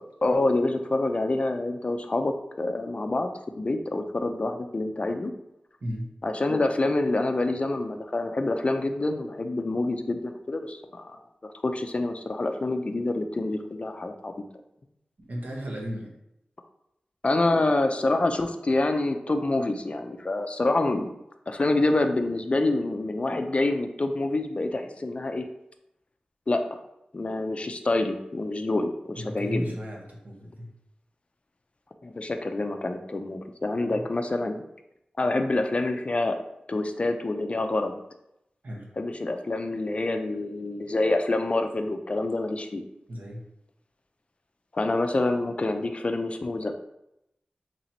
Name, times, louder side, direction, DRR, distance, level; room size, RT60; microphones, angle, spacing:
voice 1, 0.2-3.3 3.6-5.3 6.2-11.2 11.6-14.3 17.2-21.1 21.5-25.4 26.5-26.8 27.1-29.7 32.0-34.6 35.2-36.4 36.7-38.0 39.0-42.8 44.7-46.7, left 2 dB, 40° left, 6 dB, 0.4 m, -27 dB
voice 2, 15.2-16.1 29.1-30.7 33.9-34.1 38.6-38.9 43.1-43.4, equal, 70° right, -2 dB, 1.0 m, -35 dB
2.9 x 2.9 x 4.2 m, 0.85 s
cardioid pair, 50°, 3 cm